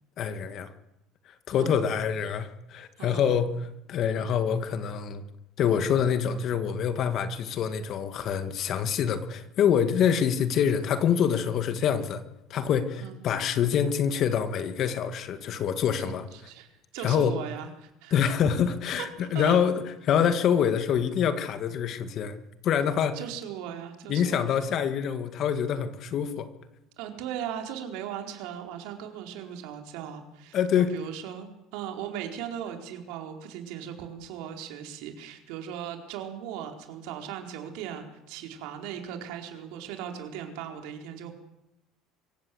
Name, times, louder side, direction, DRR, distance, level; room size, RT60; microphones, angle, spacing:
voice 1, 0.2-0.7 1.3-3.5 3.9-5.2 5.6-12.2 12.5-16.2 17.0-17.3 18.1-22.4 22.6-23.2 24.1-26.5 30.5-30.9, left 8 dB, 40° left, 10 dB, 1.8 m, -26 dB
voice 2, 1.6-2.0 3.0-3.4 13.0-13.2 16.0-18.2 19.2-19.6 23.1-24.6 27.0-41.3, right 9 dB, 70° right, 4 dB, 4.4 m, -38 dB
25.5 x 16.5 x 7.9 m, 0.88 s
cardioid pair, 150°, 0 cm